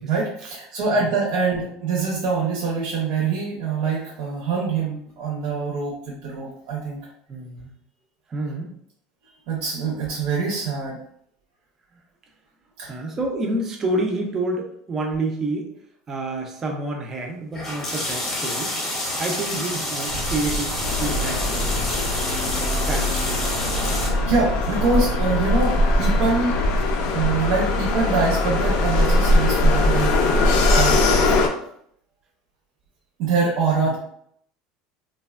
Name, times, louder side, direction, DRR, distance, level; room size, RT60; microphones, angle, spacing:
voice 1, 0.0-7.0 9.5-11.0 12.8-13.0 23.9-26.6 27.1-31.4 33.2-34.0, right 4 dB, 60° right, -3 dB, 0.6 m, -24 dB
voice 2, 7.3-7.7 8.3-8.7 12.8-15.7 16.1-18.7 19.2-22.0 22.8-23.5 24.7-24.8 33.8-34.0, right 2 dB, 20° right, 1 dB, 0.4 m, -29 dB
sound 1, 17.5-24.1, left 1 dB, 20° left, 0.7 m, -28 dB
sound 2, 20.1-26.9, right 2 dB, 85° right, 0.8 m, -31 dB
sound 3, 20.8-31.5, left 2 dB, 50° left, 0.4 m, -21 dB
3.1 x 2.1 x 2.3 m, 0.68 s
cardioid pair, 165°, 2 cm